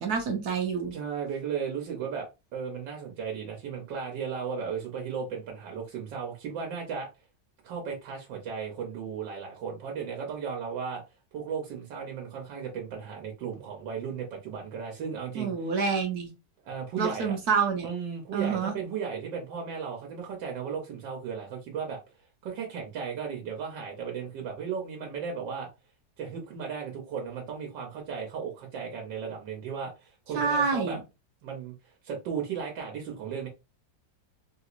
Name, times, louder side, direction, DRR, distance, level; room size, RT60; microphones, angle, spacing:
voice 1, 0.0-0.9 15.4-16.3 17.0-17.9 18.3-18.8 30.3-31.0, right 5 dB, 65° right, 1.2 m, -27 dB
voice 2, 0.9-7.1 7.6-11.0 11.3-15.5 16.6-17.4 17.8-22.0 22.4-25.7 26.2-31.0 31.4-31.7 32.0-33.5, right 6 dB, 90° right, 1.5 m, -35 dB
3.6 x 2.9 x 2.4 m
omnidirectional pair, 1.9 m